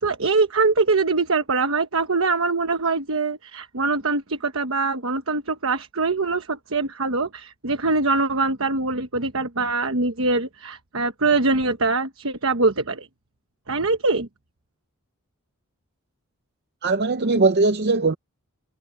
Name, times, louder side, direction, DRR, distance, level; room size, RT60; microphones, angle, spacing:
voice 1, 0.0-13.1 13.7-14.3, right 3 dB, 65° right, 1.2 m, -23 dB
voice 2, 16.8-18.1, right 3 dB, 45° right, 0.7 m, -20 dB
head